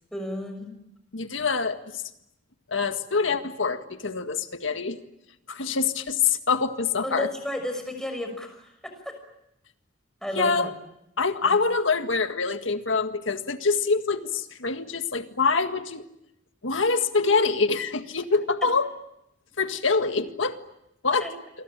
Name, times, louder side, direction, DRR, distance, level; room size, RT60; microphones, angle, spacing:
voice 1, 0.1-0.7 7.0-8.9 10.2-10.7 11.4-11.5 21.2-21.3, left 1 dB, 5° left, 5 dB, 6.2 m, -32 dB
voice 2, 1.1-2.0 2.7-5.0 5.5-7.3 10.4-10.7 11.2-16.0 16.6-18.9 19.6-20.6 21.0-21.3, left 4 dB, 80° left, 8 dB, 1.8 m, -25 dB
28.5 x 23.0 x 8.8 m, 0.86 s
head